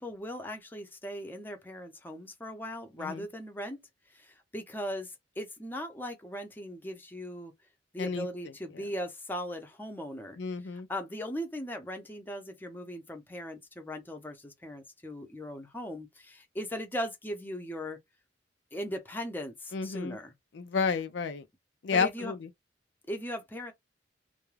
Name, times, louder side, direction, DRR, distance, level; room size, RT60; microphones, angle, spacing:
voice 1, 0.0-3.8 4.1-7.5 7.9-10.4 10.7-18.0 18.7-20.3 21.9-22.4 23.1-23.7, equal, 10° left, 0.6 m, -38 dB
voice 2, 10.4-10.9 19.7-20.2 20.5-21.4 21.8-22.5, left 5 dB, 70° left, 0.4 m, -31 dB
2.3 x 2.2 x 3.2 m
head